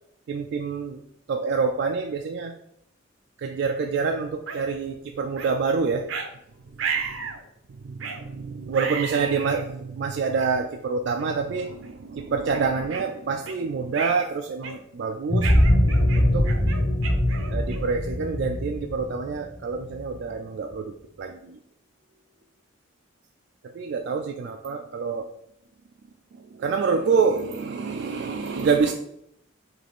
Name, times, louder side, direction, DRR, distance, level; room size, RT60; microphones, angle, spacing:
voice 1, 0.3-1.0 1.3-2.5 3.4-6.1 6.7-6.8 7.0-7.3 7.7-15.6 16.2-16.5 17.5-21.6 23.6-25.3 26.3-28.9, right 5 dB, 55° right, 4 dB, 0.3 m, -27 dB
sound 1, 4.5-4.6 5.4-5.5 6.1-6.3 6.8-7.4 8.0-8.2 8.7-9.7 10.4-10.5 11.2-11.4 11.8-12.0 12.5-13.6 13.9-14.3 14.6-15.0 15.4-18.0, right 6 dB, 80° right, 0.7 m, -33 dB
sound 2, 15.3-20.0, left 1 dB, 55° left, 1.4 m, -22 dB
5.9 x 2.5 x 3.5 m, 0.75 s
head